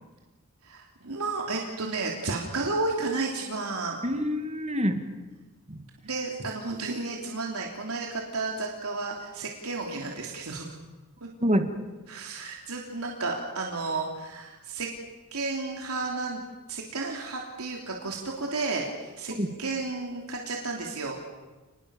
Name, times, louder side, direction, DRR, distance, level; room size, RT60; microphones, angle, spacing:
voice 1, 0.6-4.0 6.0-10.7 12.1-14.9 15.3-16.4 16.7-21.2, right 3 dB, 90° right, 0 dB, 3.2 m, -32 dB
voice 2, 4.0-5.0 5.7-5.8 11.4-11.7 19.3-19.5, equal, 30° right, 7 dB, 2.2 m, -26 dB
30.0 x 20.5 x 7.1 m, 1.2 s
head